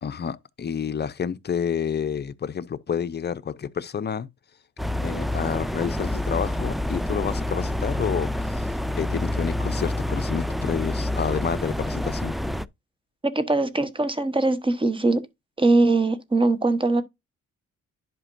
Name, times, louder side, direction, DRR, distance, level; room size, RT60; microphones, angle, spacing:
voice 1, 0.0-4.3 5.0-8.7 9.0-12.3, left 7 dB, 35° left, 0.7 m, -29 dB
sound 1, 4.8-12.7, left 1 dB, ahead, 0.3 m, -27 dB
voice 2, 13.3-15.2 15.6-17.0, right 2 dB, 15° right, 1.1 m, -21 dB
11.0 x 5.1 x 2.6 m
cardioid pair, 90°, 30 cm